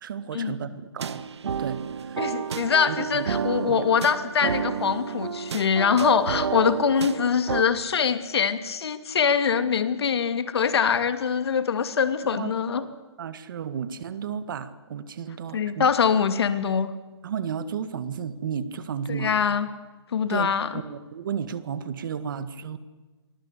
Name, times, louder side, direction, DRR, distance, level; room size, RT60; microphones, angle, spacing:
voice 1, 0.0-1.2 1.6-2.3 2.9-3.3 3.7-3.9 12.4-12.5 12.8-15.9 17.2-19.4 20.3-22.8, right 7 dB, 45° right, 12 dB, 1.8 m, -33 dB
sound 1, 1.0-7.6, right 7 dB, 70° right, 1.8 m, -30 dB
voice 2, 2.2-12.8 15.5-16.9 19.1-19.7 20.1-20.7, left 7 dB, 60° left, 10 dB, 2.6 m, -23 dB
30.0 x 23.5 x 8.4 m, 1.2 s
hypercardioid pair, 165°, 15 cm